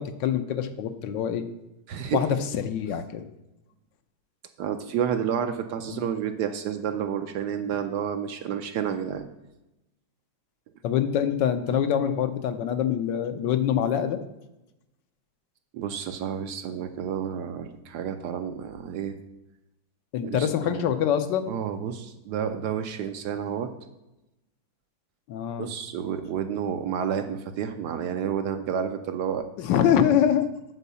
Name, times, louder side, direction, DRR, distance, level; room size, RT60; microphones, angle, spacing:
voice 1, 0.0-1.4 2.1-3.2 5.9-6.0 10.8-14.2 20.1-21.5 25.3-25.7 29.6-30.5, left 9 dB, 75° left, 9 dB, 1.3 m, -25 dB
voice 2, 1.9-2.2 4.6-9.2 15.7-19.2 20.2-20.9 21.5-23.7 25.6-29.4, right 8 dB, 70° right, 7 dB, 1.1 m, -30 dB
8.2 x 4.6 x 6.8 m, 0.93 s
omnidirectional pair, 2.1 m